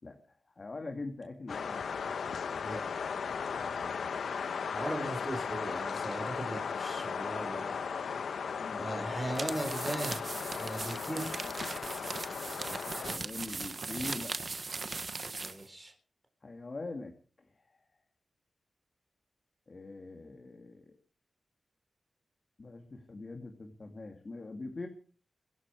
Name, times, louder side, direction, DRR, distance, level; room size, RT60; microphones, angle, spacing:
voice 1, 0.0-1.9 3.8-4.1 8.6-8.9 12.9-14.3 16.4-17.5 19.7-21.0 22.6-24.9, left 3 dB, 40° left, 4 dB, 2.6 m, -43 dB
sound 1, 1.5-13.2, left 6 dB, 85° left, 1.0 m, -36 dB
voice 2, 2.6-3.2 4.7-7.7 8.8-11.4 15.4-15.9, right 1 dB, 5° right, 4 dB, 4.3 m, -38 dB
sound 2, 9.3-15.6, right 3 dB, 40° right, 1.2 m, -39 dB
24.0 x 11.0 x 4.9 m, 0.41 s
wide cardioid pair, 120°, 0 cm